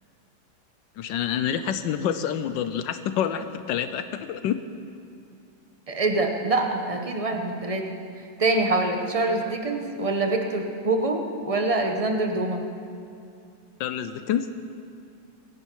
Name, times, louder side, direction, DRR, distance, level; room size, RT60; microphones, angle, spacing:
voice 1, 1.0-4.6 13.8-14.5, left 9 dB, 80° left, 10 dB, 1.2 m, -27 dB
voice 2, 5.9-7.8 8.4-12.6, right 2 dB, 25° right, 3 dB, 0.9 m, -25 dB
23.5 x 10.0 x 4.6 m, 2.4 s
omnidirectional pair, 2.1 m